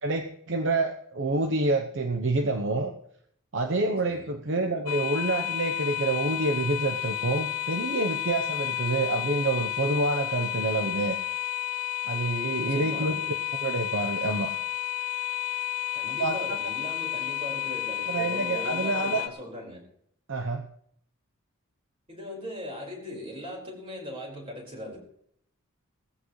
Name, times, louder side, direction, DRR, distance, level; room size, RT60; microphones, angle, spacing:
voice 1, 0.0-2.9 3.5-11.2 12.1-13.2 13.6-14.5 16.2-16.4 18.1-19.2 20.3-20.7, right 2 dB, 55° right, 5 dB, 0.9 m, -27 dB
sound 1, 4.9-19.3, left 12 dB, 75° left, 0.9 m, -31 dB
voice 2, 12.5-13.3 15.9-19.8 22.1-25.0, equal, 25° right, -1 dB, 4.9 m, -39 dB
18.5 x 14.5 x 3.2 m, 0.67 s
head